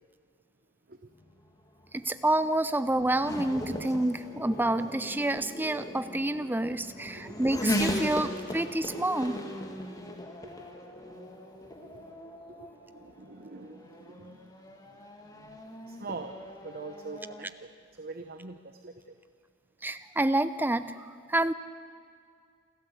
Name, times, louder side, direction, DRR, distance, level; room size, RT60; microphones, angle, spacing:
Race car auto racing / Accelerating revving vroom, 1.2-17.5, left 1 dB, 15° left, 1.7 m, -38 dB
voice 1, 1.9-9.4 19.8-21.0 21.3-21.5, right 1 dB, 10° right, 13 dB, 0.6 m, -28 dB
voice 2, 12.7-14.5 15.9-16.3 16.6-17.7 18.0-18.9, right 3 dB, 45° right, 7 dB, 1.0 m, -43 dB
27.5 x 13.0 x 8.3 m, 2.2 s
head